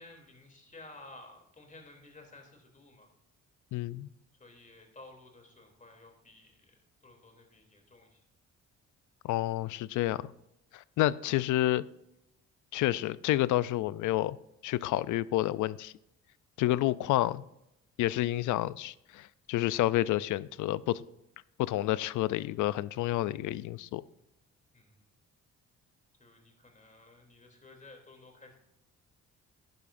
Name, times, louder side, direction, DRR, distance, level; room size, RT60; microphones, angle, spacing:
voice 1, 0.0-3.1 4.4-8.2 24.7-25.1 26.2-28.6, left 2 dB, 25° left, 2 dB, 3.0 m, -54 dB
voice 2, 3.7-4.1 9.2-10.3 10.7-11.9 12.7-14.4 14.6-15.9 16.6-17.4 18.0-21.0 21.6-24.0, left 15 dB, 80° left, 19 dB, 0.5 m, -29 dB
11.5 x 10.5 x 2.6 m, 0.87 s
cardioid pair, 90°, 30 cm